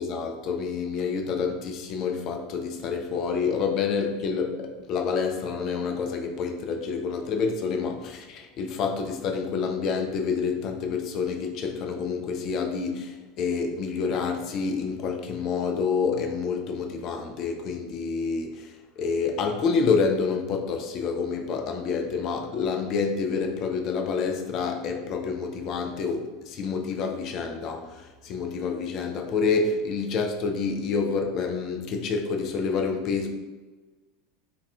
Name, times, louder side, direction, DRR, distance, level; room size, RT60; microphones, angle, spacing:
voice 1, 0.0-18.7 19.0-33.3, left 5 dB, 40° left, 4 dB, 0.4 m, -28 dB
2.3 x 2.3 x 3.4 m, 1.2 s
figure-of-eight pair, 80°, 0 cm